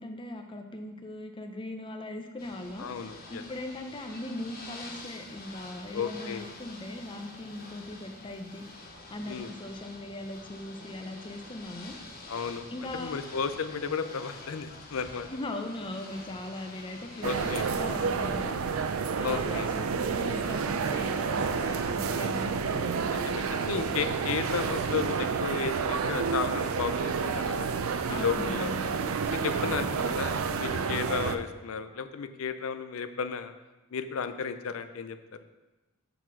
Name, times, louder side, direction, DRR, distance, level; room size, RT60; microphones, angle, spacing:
voice 1, 0.0-2.9 3.3-8.6 9.1-11.9 12.7-13.2 15.3-18.5 19.2-23.4 28.1-28.9 29.6-30.0, left 1 dB, 25° left, 5 dB, 0.6 m, -39 dB
Ocean / Boat Water vehicle, 2.4-17.8, left 2 dB, 45° left, 0.9 m, -47 dB
voice 2, 2.8-3.4 5.9-6.5 9.3-9.5 12.3-15.3 17.2-17.6 19.2-19.7 23.1-27.7 28.1-28.7 29.3-33.5 33.9-35.2, left 6 dB, 75° left, 10 dB, 0.5 m, -33 dB
sound 1, 17.2-31.4, right 5 dB, 80° right, 0.4 m, -30 dB
6.9 x 4.1 x 6.0 m, 1.1 s
head